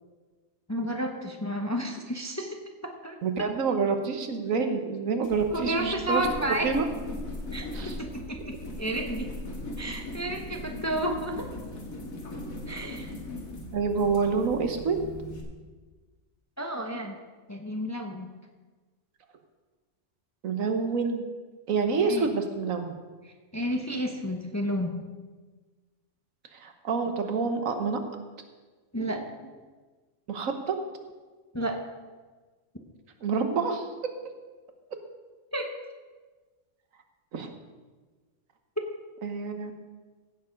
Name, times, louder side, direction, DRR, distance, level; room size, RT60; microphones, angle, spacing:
voice 1, 0.7-2.6 2.8-3.5 5.5-6.7 7.5-9.3 9.8-11.5 12.7-13.1 16.6-17.2 17.5-18.3 22.0-22.3 23.2-24.9 28.9-29.3 31.5-31.8 35.5-35.7, right 1 dB, 15° left, 3 dB, 0.8 m, -31 dB
voice 2, 3.2-6.2 6.6-6.8 7.7-8.0 13.7-15.0 20.4-21.2 21.7-23.0 26.5-28.0 30.3-30.8 33.2-33.8 37.3-37.5 39.2-39.7, right 5 dB, 75° right, 6 dB, 1.4 m, -27 dB
sound 1, 5.2-15.4, left 1 dB, 80° left, 2.3 m, -39 dB
15.5 x 6.9 x 5.2 m, 1.4 s
omnidirectional pair, 1.4 m